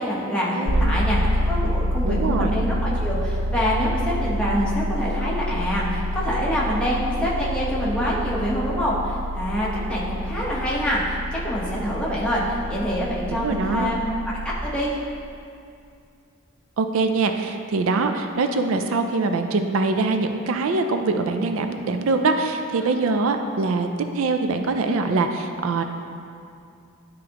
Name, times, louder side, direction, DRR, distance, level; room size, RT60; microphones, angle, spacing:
voice 1, 0.0-14.3 14.6-14.9 22.8-22.9, equal, 5° left, -7 dB, 1.0 m, -26 dB
voice 2, 0.6-0.9 2.0-2.5 13.3-13.9 16.8-23.9 24.1-25.8, right 3 dB, 75° right, 6 dB, 0.4 m, -23 dB
sound 1, 0.7-14.5, equal, 75° left, 0.6 m, -27 dB
11.0 x 3.7 x 2.9 m, 2.4 s
head